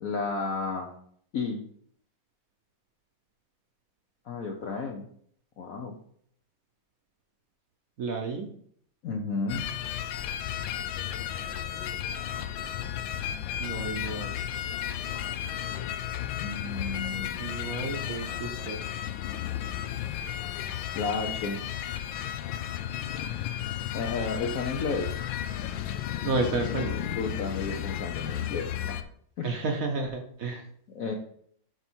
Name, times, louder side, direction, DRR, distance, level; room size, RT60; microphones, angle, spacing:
voice 1, 0.0-0.9 1.3-1.6 4.2-5.1 5.6-5.9 9.0-9.7 16.4-17.4 20.9-21.6 23.9-25.1 27.2-29.0 29.4-29.5 30.5-31.1, left 4 dB, 60° left, 1 dB, 1.0 m, -32 dB
voice 2, 8.0-8.5 13.6-14.4 17.4-18.8 26.2-27.0 29.4-30.6, right 3 dB, 55° right, 3 dB, 1.2 m, -31 dB
sound 1, 9.5-29.0, left 11 dB, 85° left, 1.3 m, -33 dB
6.8 x 5.4 x 4.5 m, 0.63 s
omnidirectional pair, 2.0 m